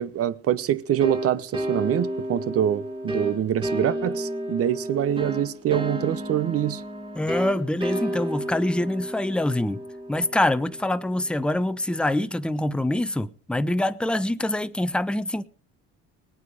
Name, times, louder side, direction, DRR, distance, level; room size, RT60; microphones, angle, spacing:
voice 1, 0.0-6.8, right 11 dB, 55° right, 1.0 m, -25 dB
sound 1, 1.0-11.5, right 1 dB, 15° right, 1.9 m, -32 dB
voice 2, 7.1-9.8 10.1-15.4, left 1 dB, 5° left, 0.7 m, -25 dB
19.5 x 9.3 x 5.0 m
cardioid pair, 95°, 29 cm